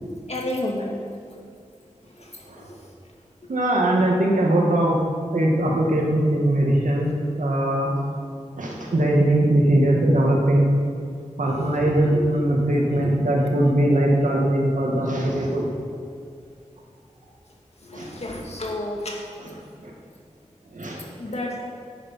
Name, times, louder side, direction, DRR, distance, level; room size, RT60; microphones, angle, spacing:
voice 1, 0.3-1.0 2.2-2.3 3.4-3.5 11.6-12.2 12.9-13.0 17.8-19.2 21.2-21.7, left 1 dB, 55° left, -1 dB, 2.1 m, -31 dB
voice 2, 2.5-2.8 3.5-4.9 5.3-7.1 7.4-8.0 8.5-10.6 11.4-16.0 17.9-18.1 19.8-19.9 20.7-21.3, right 1 dB, 85° right, -2 dB, 2.0 m, -21 dB
9.8 x 9.7 x 5.8 m, 2.3 s
wide cardioid pair, 50°, 13 cm